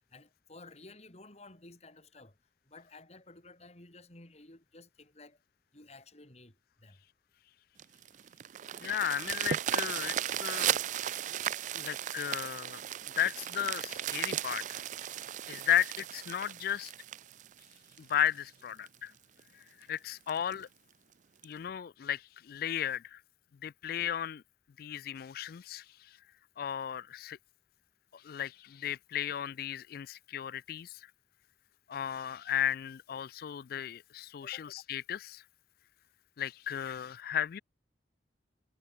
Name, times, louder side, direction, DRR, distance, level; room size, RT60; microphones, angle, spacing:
voice 1, 0.1-2.3 2.7-5.4 5.7-7.0 34.4-34.7, left 2 dB, 35° left, 3.5 m, -54 dB
sound 1, 7.8-18.3 18.9-19.0 19.4-19.5 19.8-19.9 20.3-20.5 21.4-21.5, right 10 dB, 45° right, 0.3 m, -36 dB
voice 2, 8.8-10.8 11.7-12.8 13.2-14.8 15.5-16.9 18.0-19.1 19.5-20.7 21.4-23.2 23.6-24.4 24.8-26.2 26.6-27.4 28.1-31.1 31.9-35.4 36.4-37.6, left 10 dB, 55° left, 0.3 m, -35 dB
head